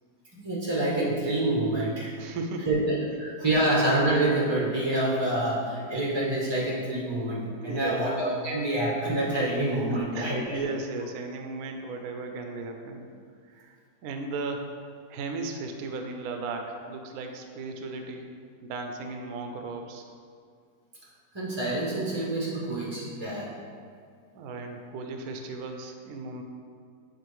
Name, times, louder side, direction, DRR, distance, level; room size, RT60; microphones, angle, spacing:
voice 1, 0.3-2.1 2.7-10.6 21.3-23.5, right 1 dB, 30° right, -6 dB, 0.4 m, -27 dB
voice 2, 2.1-2.7 7.7-8.1 9.9-13.1 13.4-13.8 14.0-14.8 15.1-18.3 18.6-20.0 24.3-26.4, right 3 dB, 70° right, 4 dB, 1.0 m, -36 dB
8.0 x 3.9 x 3.1 m, 2.2 s
omnidirectional pair, 1.8 m